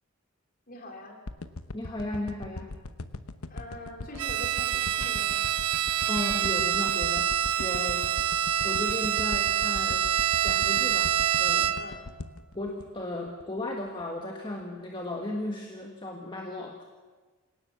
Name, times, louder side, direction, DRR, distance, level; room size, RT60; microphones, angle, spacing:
voice 1, 0.7-1.2 3.5-5.5 7.7-7.9 11.8-12.0, left 1 dB, 40° left, 2 dB, 3.9 m, -44 dB
sound 1, 1.3-13.6 14.0-14.1, left 2 dB, 80° left, 1.0 m, -40 dB
voice 2, 1.7-2.7 6.1-7.3 7.6-8.0 8.6-10.1 10.4-11.1 11.4-11.8 12.5-16.7, left 1 dB, 20° left, 1 dB, 1.6 m, -35 dB
Bowed string instrument, 4.2-12.0, right 10 dB, 85° right, 1.0 m, -26 dB
26.5 x 18.0 x 7.3 m, 1.3 s
head